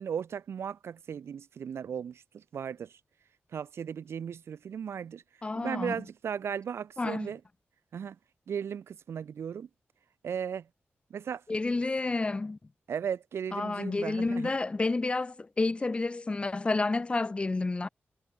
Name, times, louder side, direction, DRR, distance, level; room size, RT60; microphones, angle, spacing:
voice 1, 0.0-3.0 3.5-5.2 5.5-7.4 7.9-8.2 8.5-9.7 10.2-10.7 11.1-11.4 12.9-14.5, right 7 dB, 85° right, 0.7 m, -36 dB
voice 2, 5.4-6.0 7.0-7.3 11.5-12.6 13.5-17.9, left 3 dB, 25° left, 0.4 m, -30 dB
wide cardioid pair, 90°, 4 cm